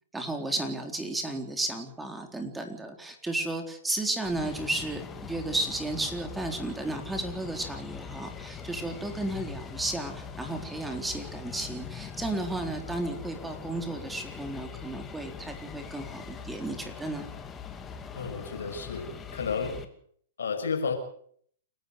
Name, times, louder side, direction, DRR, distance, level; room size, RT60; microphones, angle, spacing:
voice 1, 0.1-17.3, right 2 dB, 10° right, 5 dB, 4.0 m, -33 dB
sound 1, 4.2-19.9, left 7 dB, 20° left, 2.5 m, -42 dB
voice 2, 18.1-19.9 20.4-21.0, left 5 dB, 75° left, 6 dB, 5.9 m, -32 dB
29.0 x 12.5 x 7.9 m, 0.63 s
hypercardioid pair, 115°, 0 cm